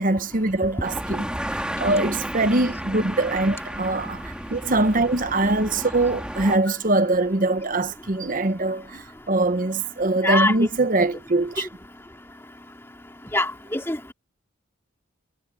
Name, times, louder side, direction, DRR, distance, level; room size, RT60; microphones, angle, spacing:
voice 1, 0.0-11.7, right 2 dB, 40° right, 0.9 m, -23 dB
sound 1, 0.8-6.6, equal, 5° right, 2.9 m, -32 dB
voice 2, 13.3-14.1, left 2 dB, 10° left, 2.5 m, -23 dB
head